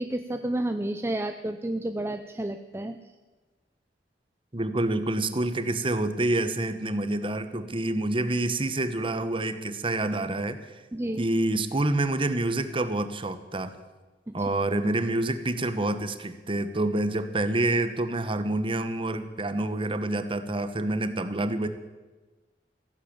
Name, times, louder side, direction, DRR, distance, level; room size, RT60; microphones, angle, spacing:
voice 1, 0.0-3.1 10.9-11.2 14.3-14.4, right 1 dB, 15° right, 8 dB, 0.5 m, -31 dB
voice 2, 4.5-10.7 11.2-13.7 14.3-21.7, right 2 dB, 30° right, 10 dB, 1.1 m, -27 dB
15.5 x 10.5 x 8.6 m, 1.2 s
head